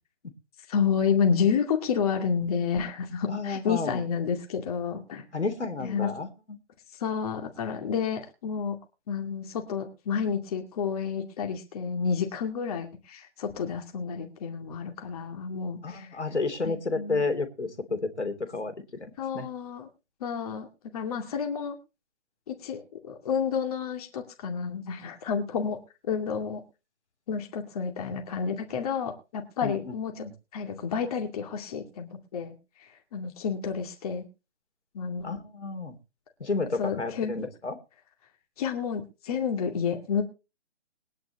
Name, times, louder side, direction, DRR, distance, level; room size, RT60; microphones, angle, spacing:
voice 1, 0.7-5.2 5.8-6.1 7.0-8.8 9.1-16.1 16.6-17.2 19.2-19.9 20.2-20.7 20.9-21.8 22.5-25.8 26.1-26.6 27.3-30.2 30.5-34.3 34.9-35.4 36.8-37.4 38.6-40.2, left 6 dB, 30° left, 3 dB, 2.4 m, -30 dB
voice 2, 3.3-4.0 5.3-6.3 15.8-19.5 29.6-30.3 35.2-36.0 36.4-37.8, left 3 dB, 70° left, 8 dB, 3.3 m, -31 dB
21.5 x 10.0 x 3.0 m, 0.30 s
figure-of-eight pair, 140°, 36 cm